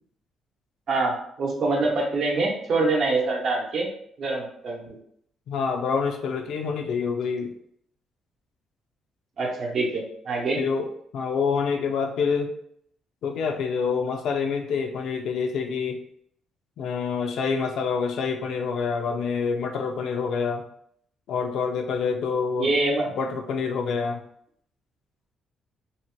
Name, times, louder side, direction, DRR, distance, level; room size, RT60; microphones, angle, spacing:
voice 1, 0.9-3.9 4.2-5.0 9.4-10.6 22.6-23.1, right 3 dB, 60° right, -1 dB, 0.8 m, -25 dB
voice 2, 5.5-7.5 10.6-12.6 13.2-16.0 16.8-20.6 21.3-22.7 23.2-24.2, left 5 dB, 75° left, 5 dB, 0.4 m, -27 dB
2.8 x 2.1 x 3.0 m, 0.68 s
cardioid pair, 90°, 0 cm